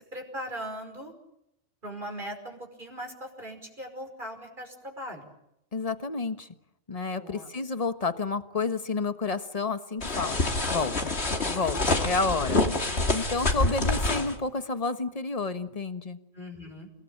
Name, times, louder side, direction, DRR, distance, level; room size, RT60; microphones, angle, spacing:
voice 1, 0.1-1.1 1.8-5.3 7.1-7.5 12.0-12.1 16.3-16.9, equal, 40° right, 4 dB, 5.6 m, -39 dB
voice 2, 5.7-6.5 6.9-10.4 10.7-11.1 11.4-12.6 13.1-16.2, left 3 dB, 30° left, 10 dB, 1.4 m, -30 dB
sound 1, 10.0-14.3, left 2 dB, 55° left, 2.9 m, -27 dB
29.0 x 19.0 x 8.8 m, 0.84 s
omnidirectional pair, 1.4 m